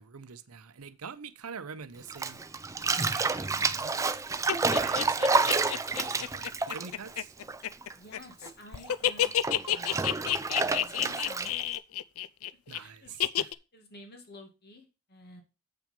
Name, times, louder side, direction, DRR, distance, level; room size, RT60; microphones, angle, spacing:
voice 1, 0.0-2.4 2.9-4.0 4.7-5.7 5.9-7.3 12.7-13.5, right 6 dB, 80° right, 0.8 m, -45 dB
Bathtub (filling or washing), 2.1-7.9 8.2-11.8, right 3 dB, 15° right, 0.4 m, -29 dB
sound 1, 4.5-8.5 8.7-12.8 13.2-13.5, left 12 dB, 70° left, 0.5 m, -29 dB
voice 2, 7.9-10.0 10.5-11.5 12.8-13.2 13.7-15.4, left 2 dB, 45° left, 2.0 m, -50 dB
7.7 x 6.1 x 5.2 m
head